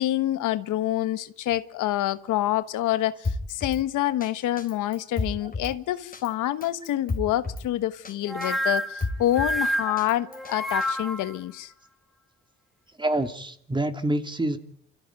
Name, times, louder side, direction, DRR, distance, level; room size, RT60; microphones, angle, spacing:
voice 1, 0.0-11.7, left 14 dB, 85° left, 1.3 m, -27 dB
Drum kit, 3.2-3.8 4.2-4.3 4.6-5.7 6.1-6.3 6.6-7.7 8.0-8.1 8.4-9.6 10.0-10.9, left 3 dB, 30° left, 3.9 m, -32 dB
sound 1, 8.3-11.4, equal, ahead, 2.5 m, -28 dB
voice 2, 13.0-14.6, right 1 dB, 15° right, 2.6 m, -26 dB
28.5 x 14.0 x 9.5 m
cardioid pair, 90°, 30 cm